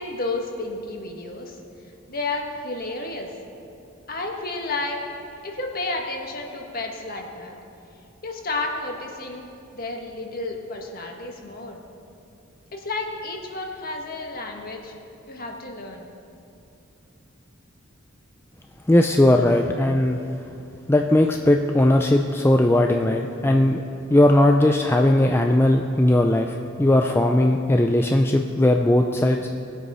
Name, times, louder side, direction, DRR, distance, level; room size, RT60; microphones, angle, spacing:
voice 1, 0.0-1.6 2.1-3.3 4.1-5.0 5.4-7.6 8.2-9.5 9.7-11.8 12.7-14.9 15.3-16.1, left 2 dB, 45° left, 1 dB, 1.5 m, -31 dB
voice 2, 18.9-20.2 20.9-23.8 24.1-29.4, left 1 dB, 10° left, 3 dB, 0.4 m, -18 dB
20.5 x 8.0 x 5.5 m, 2.7 s
head